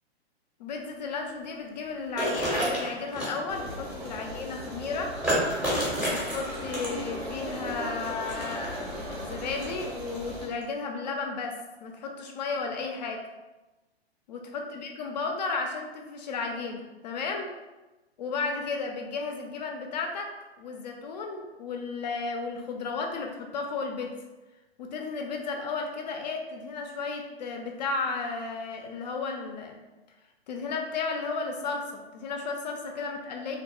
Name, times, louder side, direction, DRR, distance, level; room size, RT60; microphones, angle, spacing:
voice 1, 0.6-5.1 6.1-11.5 11.8-13.2 14.3-17.5 18.2-20.3 20.6-24.1 24.8-29.8 30.5-33.6, left 4 dB, 45° left, 3 dB, 0.4 m, -33 dB
sound 1, 2.2-3.4 5.2-7.1 8.1-8.7 9.6-9.7 10.5-10.6, equal, 5° right, 0.6 m, -28 dB
sound 2, 3.5-10.5, equal, 75° right, 1.2 m, -37 dB
2.7 x 2.1 x 2.9 m, 1.1 s
figure-of-eight pair, 115°, 32 cm